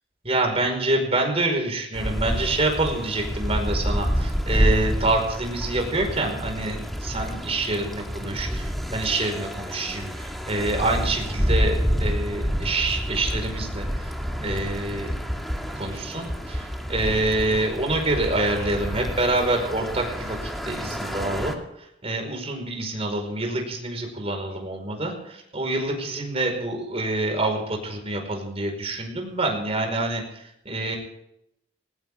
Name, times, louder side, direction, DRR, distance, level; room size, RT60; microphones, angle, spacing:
voice 1, 0.2-15.1 15.8-20.4 20.6-21.6 22.0-30.2 30.6-31.0, right 2 dB, 35° right, 3 dB, 5.0 m, -26 dB
sound 1, 1.9-21.5, equal, ahead, 2.1 m, -28 dB
19.5 x 19.0 x 3.7 m, 0.81 s
head